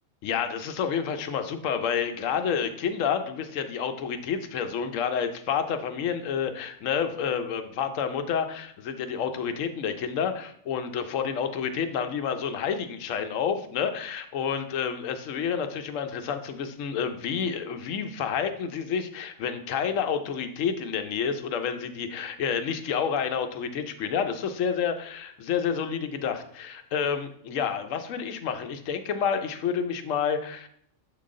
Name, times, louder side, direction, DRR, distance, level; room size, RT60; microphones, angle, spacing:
voice 1, 0.2-30.7, left 7 dB, 80° left, 8 dB, 1.0 m, -29 dB
7.1 x 3.9 x 3.7 m, 0.66 s
omnidirectional pair, 1.3 m